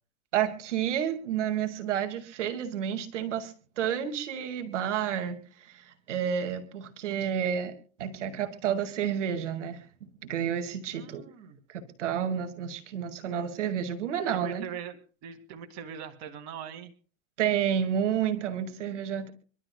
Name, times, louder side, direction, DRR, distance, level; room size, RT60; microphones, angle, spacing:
voice 1, 0.3-7.7 8.0-9.8 10.2-11.2 11.7-14.6 17.4-19.3, right 9 dB, 90° right, 8 dB, 2.2 m, -30 dB
voice 2, 10.9-11.6 14.3-16.9 18.9-19.0, right 8 dB, 50° right, 6 dB, 2.1 m, -41 dB
25.0 x 12.5 x 2.2 m, 0.39 s
supercardioid pair, 120°, 35 cm